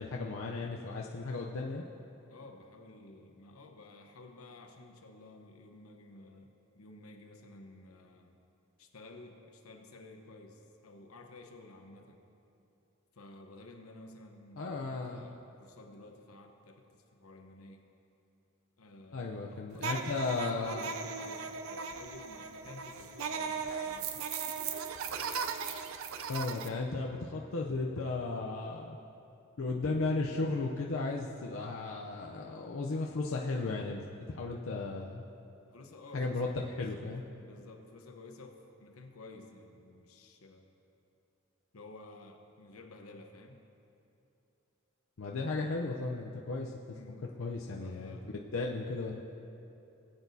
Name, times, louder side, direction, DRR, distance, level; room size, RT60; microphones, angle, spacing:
voice 1, 0.0-1.8 14.6-15.2 19.1-20.9 26.3-29.0 29.6-35.2 36.1-37.2 45.2-46.8 47.4-49.2, left 3 dB, 65° left, -1 dB, 0.6 m, -35 dB
voice 2, 2.3-8.3 8.8-12.2 13.1-17.8 18.8-24.2 35.7-36.9 37.4-40.7 41.7-43.6 46.9-47.3 47.8-48.3, left 2 dB, 90° left, 4 dB, 1.0 m, -53 dB
sound 1, 19.8-26.7, right 5 dB, 75° right, 0.5 m, -37 dB
19.0 x 8.2 x 2.7 m, 2.8 s
head